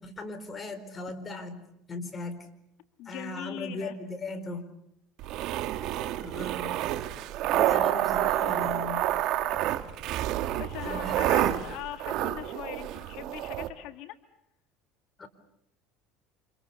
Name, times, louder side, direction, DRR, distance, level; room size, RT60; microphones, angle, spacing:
voice 1, 0.0-2.5 3.0-4.7 6.2-6.8 7.5-9.1 10.8-11.5 15.2-15.3, left 2 dB, 25° left, 8 dB, 4.5 m, -38 dB
voice 2, 3.0-3.9 10.6-14.2, left 13 dB, 70° left, 7 dB, 2.0 m, -41 dB
sound 1, 5.2-13.7, right 13 dB, 60° right, 1.9 m, -28 dB
29.5 x 27.0 x 7.0 m, 0.78 s
supercardioid pair, 120°, 0 cm